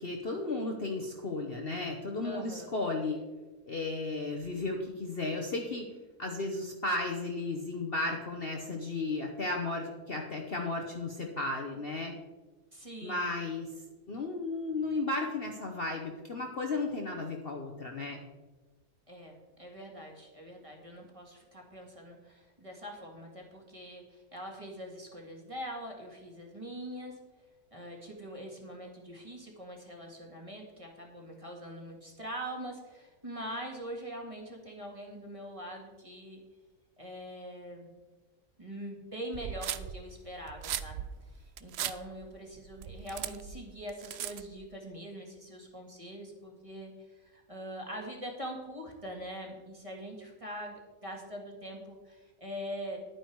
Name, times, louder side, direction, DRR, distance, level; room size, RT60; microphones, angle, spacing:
voice 1, 0.0-3.2 3.7-5.8 6.2-12.1 13.0-13.7 14.1-18.2, left 2 dB, 40° left, 2 dB, 1.1 m, -34 dB
voice 2, 2.2-2.7 12.7-13.3 19.1-27.2 27.7-36.4 37.0-37.9 38.6-53.1, equal, 20° right, -1 dB, 2.0 m, -43 dB
sound 1, 39.3-44.6, right 10 dB, 70° right, 0.6 m, -38 dB
11.0 x 9.1 x 4.6 m, 1.2 s
omnidirectional pair, 1.6 m